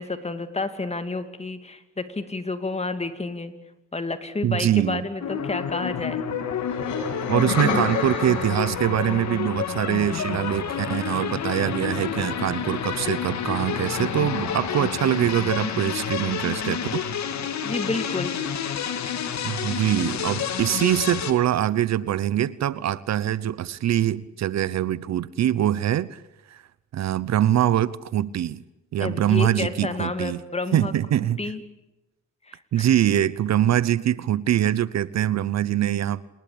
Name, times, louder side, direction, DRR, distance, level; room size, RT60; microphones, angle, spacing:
voice 1, 0.0-3.5 3.9-6.2 9.9-10.4 17.6-18.3 29.0-30.9 31.4-31.6 32.5-32.9, left 3 dB, 20° left, 9 dB, 2.6 m, -30 dB
voice 2, 4.4-5.0 7.3-17.0 19.4-26.2 26.5-26.6 26.9-28.6 28.9-30.4 30.7-31.4 32.7-36.2, right 11 dB, 60° right, 19 dB, 0.9 m, -23 dB
sound 1, 5.2-21.3, left 8 dB, 65° left, 2.5 m, -29 dB
sound 2, 6.6-10.3 11.6-16.3, left 3 dB, 80° left, 7.0 m, -33 dB
28.5 x 20.5 x 8.7 m, 0.98 s
cardioid pair, 90°, 30 cm